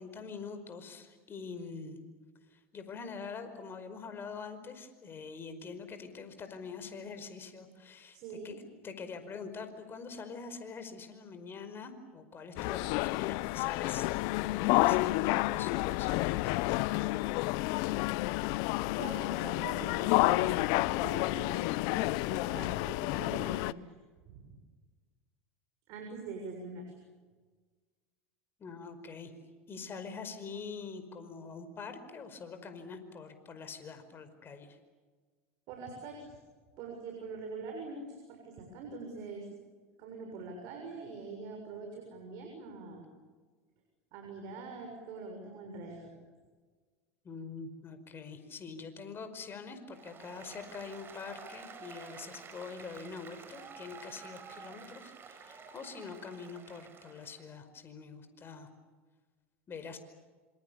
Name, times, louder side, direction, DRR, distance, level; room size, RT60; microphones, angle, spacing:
voice 1, 0.0-2.0 2.5-8.2 8.4-14.1 14.4-17.1 28.6-29.3 29.7-34.8 47.2-58.7 59.7-60.0, left 5 dB, 30° left, 9 dB, 5.1 m, -44 dB
voice 2, 8.1-8.6 18.9-24.0 24.3-24.4 25.9-26.8 35.7-36.3 36.8-39.5 40.0-43.0 44.1-46.1, right 4 dB, 55° right, 3 dB, 6.9 m, -44 dB
sound 1, 12.6-23.7, left 20 dB, 60° left, 0.7 m, -30 dB
Applause, 49.9-57.4, right 5 dB, 30° right, 5.3 m, -50 dB
27.0 x 26.5 x 7.1 m, 1.4 s
hypercardioid pair, 95°, 7 cm